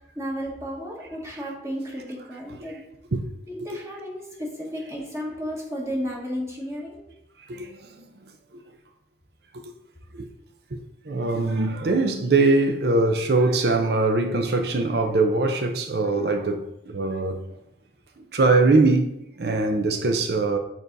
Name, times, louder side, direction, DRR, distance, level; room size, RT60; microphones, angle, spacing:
voice 1, 0.1-2.8 3.5-7.0, equal, 15° right, 1.1 m, -33 dB
voice 2, 7.5-8.1 8.5-8.6 9.5-9.7 10.1-10.3 10.7-17.6 18.2-20.6, right 3 dB, 60° right, 0.5 m, -22 dB
6.8 x 2.7 x 5.1 m
head